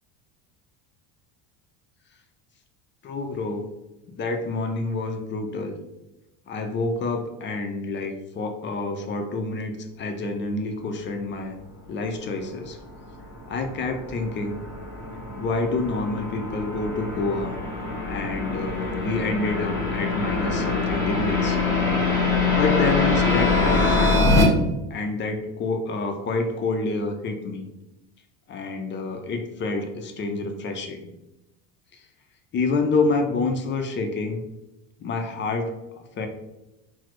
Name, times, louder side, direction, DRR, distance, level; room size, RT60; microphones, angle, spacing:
voice 1, 3.0-3.7 4.2-5.8 6.5-11.6 11.9-12.8 13.5-14.6 15.4-17.6 18.1-21.6 22.1-24.3 24.9-27.7 28.5-31.1 31.9-32.1 32.5-34.4 35.0-36.3, left 3 dB, 30° left, 5 dB, 0.4 m, -28 dB
sound 1, 12.9-24.4, left 3 dB, 10° left, 1.0 m, -24 dB
4.0 x 2.0 x 3.0 m, 0.93 s
supercardioid pair, 115°, 38 cm